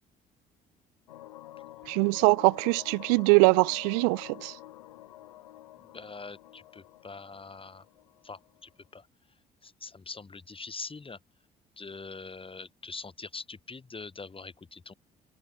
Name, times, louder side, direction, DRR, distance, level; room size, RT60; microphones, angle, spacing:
sound 1, 1.1-8.7, left 14 dB, 80° left, 5.1 m, -48 dB
voice 1, 1.9-4.6, right 38 dB, 70° right, 0.6 m, -23 dB
voice 2, 5.9-7.9 8.2-9.1 9.6-11.2 11.8-14.9, left 4 dB, 25° left, 3.6 m, -43 dB
figure-of-eight pair, 50°, 21 cm